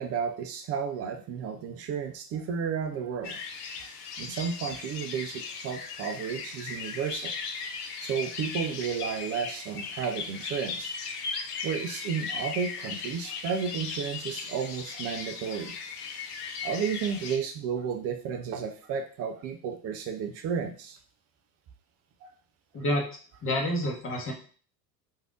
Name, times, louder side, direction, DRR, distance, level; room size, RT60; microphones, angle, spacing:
voice 1, 0.0-3.4 4.2-7.3 8.0-11.0 11.6-15.8 16.6-21.0 22.2-22.3, right 7 dB, 30° right, 5 dB, 0.4 m, -32 dB
sound 1, 3.2-17.4, left 5 dB, 70° left, 0.7 m, -37 dB
voice 2, 23.4-24.3, left 1 dB, 25° left, 0 dB, 1.0 m, -28 dB
3.3 x 2.6 x 2.4 m, 0.42 s
hypercardioid pair, 75°, 48 cm